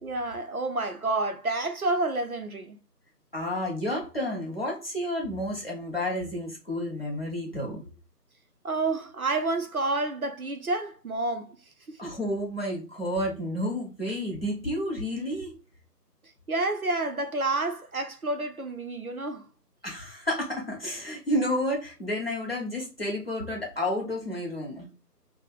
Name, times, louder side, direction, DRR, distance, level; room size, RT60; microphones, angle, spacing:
voice 1, 0.0-2.8 8.6-11.5 12.0-12.1 16.5-19.4, right 2 dB, 60° right, 0.6 m, -29 dB
voice 2, 3.3-7.9 12.0-15.6 19.8-24.9, left 1 dB, 35° left, 1.0 m, -31 dB
2.6 x 2.1 x 3.9 m
figure-of-eight pair, 165°, 49 cm